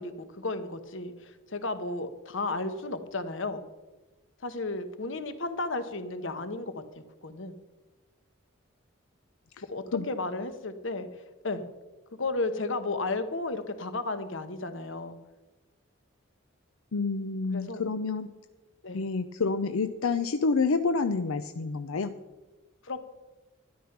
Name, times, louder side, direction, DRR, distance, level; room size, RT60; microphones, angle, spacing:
voice 1, 0.0-3.6 4.4-7.6 9.7-11.1 11.4-11.6 12.2-15.2 17.5-17.9 18.8-19.0 22.8-23.0, left 2 dB, 65° left, 10 dB, 1.1 m, -33 dB
voice 2, 16.9-18.3 18.9-22.1, left 4 dB, 90° left, 10 dB, 0.6 m, -28 dB
13.0 x 10.5 x 5.9 m, 1.1 s
head